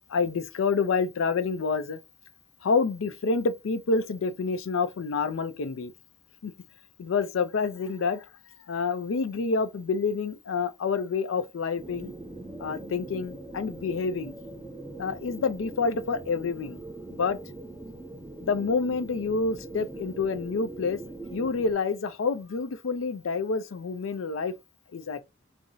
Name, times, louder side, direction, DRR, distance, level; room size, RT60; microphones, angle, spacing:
voice 1, 0.1-2.0 2.6-5.9 6.4-6.5 7.0-8.3 8.7-12.1 12.6-14.3 15.0-16.8 17.1-17.4 18.4-21.0 21.3-24.6 24.9-25.2, left 4 dB, 90° left, 0.4 m, -28 dB
sound 1, 11.8-21.7, right 2 dB, 10° right, 0.7 m, -42 dB
2.5 x 2.0 x 3.8 m
head